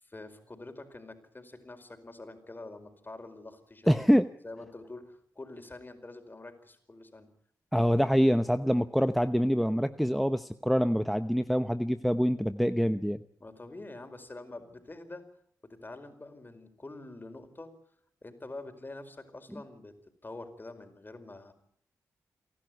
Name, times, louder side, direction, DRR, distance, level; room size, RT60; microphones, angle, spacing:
voice 1, 0.0-4.2 4.4-7.3 13.4-15.3 15.6-17.7 18.2-19.9 20.2-21.5, left 2 dB, 30° left, 8 dB, 4.8 m, -46 dB
voice 2, 3.9-4.3 7.7-13.2, equal, ahead, 12 dB, 0.9 m, -25 dB
28.5 x 11.5 x 9.3 m, 0.68 s
supercardioid pair, 50°, 7 cm